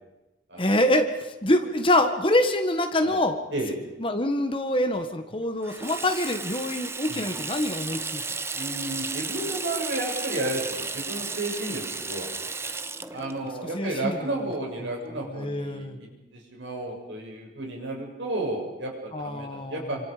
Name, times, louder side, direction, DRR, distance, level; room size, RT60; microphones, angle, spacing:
voice 1, 0.6-3.4 4.0-8.2 13.7-14.2 15.3-16.0 19.1-19.9, left 1 dB, 30° left, 7 dB, 1.6 m, -25 dB
Water tap faucet / Sink (filling or washing), 5.6-14.9, right 4 dB, 15° right, 0.7 m, -34 dB
voice 2, 8.5-12.3 13.1-20.0, right 2 dB, 70° right, 0 dB, 7.1 m, -32 dB
28.0 x 26.0 x 5.2 m, 1.0 s
head